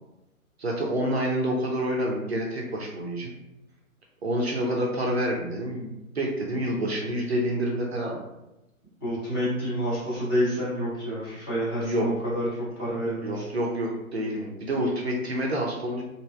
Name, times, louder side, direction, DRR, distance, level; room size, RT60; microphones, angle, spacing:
voice 1, 0.6-3.3 4.2-8.2 11.8-12.1 13.2-16.0, equal, 50° right, -1 dB, 0.5 m, -28 dB
voice 2, 9.0-12.5 12.8-13.4, equal, 20° left, -10 dB, 0.9 m, -28 dB
3.0 x 2.5 x 2.2 m, 0.92 s
figure-of-eight pair, 135°, 43 cm